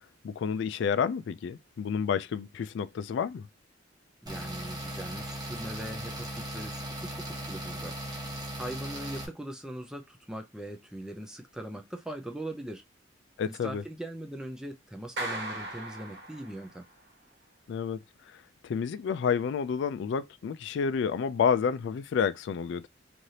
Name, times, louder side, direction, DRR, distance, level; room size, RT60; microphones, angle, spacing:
voice 1, 0.2-3.5 13.4-13.8 17.7-18.0 18.3-22.9, left 6 dB, 70° left, 0.3 m, -30 dB
voice 2, 4.2-7.9 8.6-12.8 13.5-16.8, right 1 dB, 5° right, 0.5 m, -40 dB
sound 1, 4.3-9.3, right 1 dB, 20° right, 0.9 m, -38 dB
Clapping, 15.2-16.9, right 1 dB, 65° right, 1.1 m, -37 dB
3.2 x 2.5 x 2.8 m
head